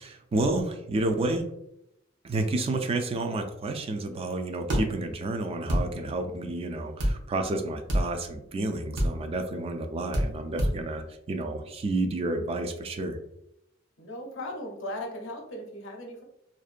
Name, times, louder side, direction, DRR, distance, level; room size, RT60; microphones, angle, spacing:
voice 1, 0.0-1.5 2.2-13.2, right 2 dB, 30° right, 6 dB, 0.3 m, -30 dB
sound 1, 4.7-4.8 5.7-5.8 7.0-7.1 7.9-8.1 9.0-9.1 10.1-10.3 10.6-10.7, equal, 65° right, 0.7 m, -24 dB
voice 2, 14.0-16.2, left 1 dB, 85° left, 1 dB, 0.6 m, -37 dB
2.6 x 2.1 x 2.4 m, 0.80 s
head